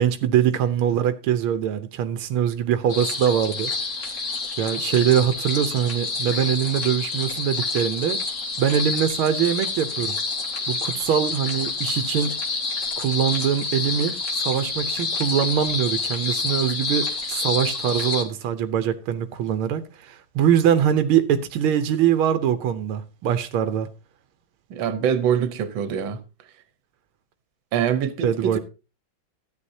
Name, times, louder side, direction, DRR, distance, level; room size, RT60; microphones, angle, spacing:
voice 1, 0.0-3.7 4.5-8.2 8.6-10.2 10.7-12.3 13.0-23.9 28.2-28.6, right 9 dB, 90° right, 1.6 m, -23 dB
sound 1, 2.9-18.2, left 4 dB, 40° left, 1.6 m, -28 dB
voice 2, 24.7-26.2 27.7-28.6, right 8 dB, 70° right, 1.7 m, -24 dB
13.0 x 9.3 x 2.7 m
omnidirectional pair, 2.2 m